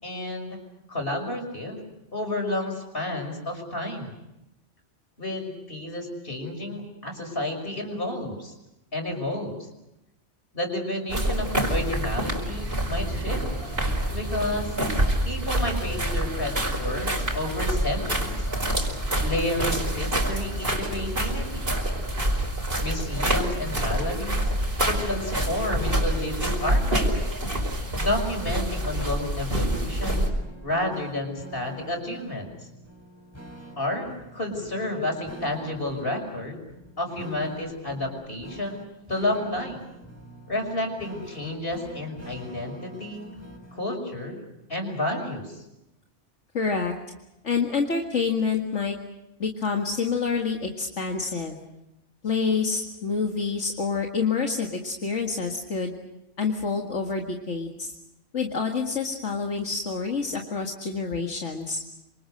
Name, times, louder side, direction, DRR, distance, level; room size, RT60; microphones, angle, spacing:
voice 1, 0.0-0.6 0.9-1.8 2.1-4.1 5.2-8.5 8.9-9.5 10.5-13.4 14.1-14.7 15.2-18.5 19.2-21.7 22.8-24.5 24.8-27.3 28.0-30.3 30.6-32.5 33.8-36.6 37.0-38.8 39.1-39.8 40.5-43.3 43.7-44.4 44.7-45.6, left 1 dB, 50° left, 4 dB, 6.2 m, -30 dB
sound 1, 11.1-30.3, right 1 dB, 50° right, 5.2 m, -27 dB
sound 2, 28.5-43.9, right 1 dB, 10° left, 5.9 m, -46 dB
voice 2, 46.5-46.9 47.4-49.0 49.4-51.6 52.2-55.9 56.4-57.9 58.3-61.8, left 5 dB, 75° left, 1 dB, 2.3 m, -27 dB
27.5 x 26.0 x 6.5 m, 0.91 s
omnidirectional pair, 1.3 m